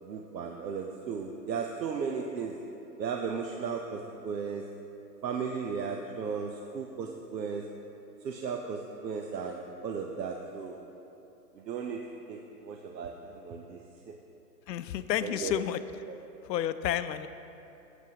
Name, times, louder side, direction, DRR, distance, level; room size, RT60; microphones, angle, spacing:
voice 1, 0.0-2.6 3.0-4.6 5.2-7.6 8.2-10.8 11.5-12.0 12.3-14.1 15.2-15.5 16.1-16.2, right 6 dB, 85° right, 3 dB, 0.8 m, -35 dB
voice 2, 14.7-15.8 16.4-17.3, left 11 dB, 80° left, 12 dB, 0.6 m, -30 dB
12.0 x 8.1 x 2.9 m, 2.9 s
hypercardioid pair, 180°, 49 cm